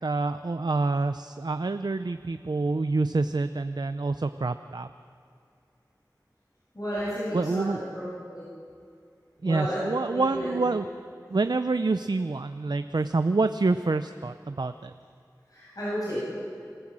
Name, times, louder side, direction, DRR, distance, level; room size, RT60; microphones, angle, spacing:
voice 1, 0.0-4.9 7.3-7.8 9.4-10.9 11.3-14.9, right 3 dB, 75° right, 10 dB, 0.5 m, -27 dB
voice 2, 6.7-8.0 8.3-8.4 9.4-9.8 10.1-10.5 15.5-16.2, equal, 55° left, -9 dB, 7.8 m, -32 dB
26.0 x 15.0 x 7.5 m, 2.3 s
wide cardioid pair, 40°, 7 cm